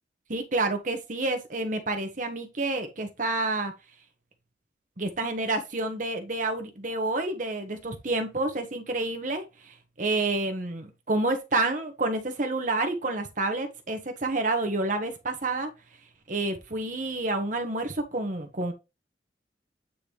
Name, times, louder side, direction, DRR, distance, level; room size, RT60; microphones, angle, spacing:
voice 1, 0.3-3.7 5.0-15.7 16.3-18.7, right 2 dB, 45° right, 1.1 m, -29 dB
8.7 x 3.9 x 3.3 m
head